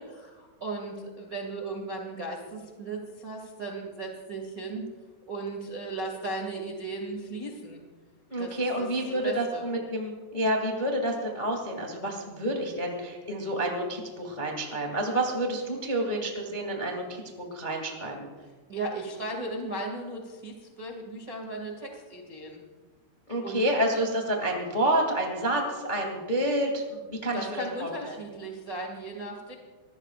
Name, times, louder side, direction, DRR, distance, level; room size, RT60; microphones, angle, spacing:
voice 1, 0.0-4.9 5.3-7.8 8.4-9.6 18.7-22.6 23.4-23.6 27.3-29.5, right 2 dB, 70° right, 0 dB, 0.8 m, -36 dB
voice 2, 8.3-18.3 23.3-28.1, right 1 dB, 45° left, 0 dB, 0.5 m, -29 dB
25.5 x 20.5 x 2.5 m, 1.4 s
omnidirectional pair, 5.5 m